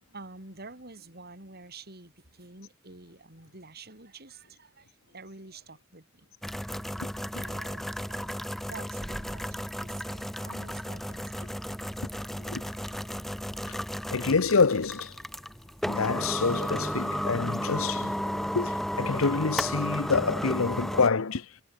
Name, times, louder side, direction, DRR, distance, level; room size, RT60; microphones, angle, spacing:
voice 1, 0.1-6.3 7.3-11.5 12.9-13.0, right 3 dB, 50° right, 6.3 m, -48 dB
sound 1, 6.4-21.1, equal, ahead, 0.8 m, -33 dB
voice 2, 14.1-15.1 15.9-21.4, left 4 dB, 85° left, 0.8 m, -27 dB
head